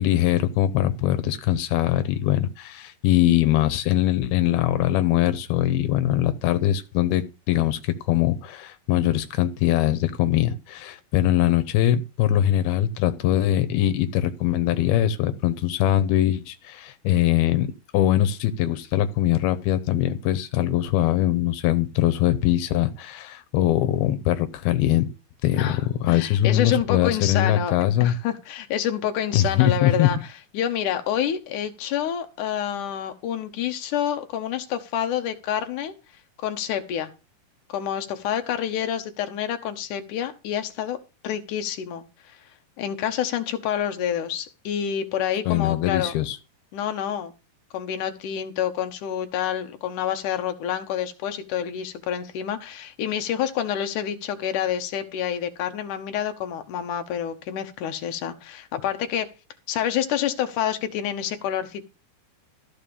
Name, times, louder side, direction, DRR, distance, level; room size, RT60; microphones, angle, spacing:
voice 1, 0.0-17.7 17.9-25.1 25.4-25.7 26.0-28.1 29.3-30.1 45.5-46.4, left 12 dB, 85° left, 2.8 m, -22 dB
voice 2, 25.5-35.9 36.4-37.1 37.7-41.0 41.2-46.1 46.7-47.3 47.7-59.3 59.7-61.8, left 9 dB, 65° left, 2.3 m, -28 dB
14.0 x 4.8 x 7.0 m
omnidirectional pair, 4.4 m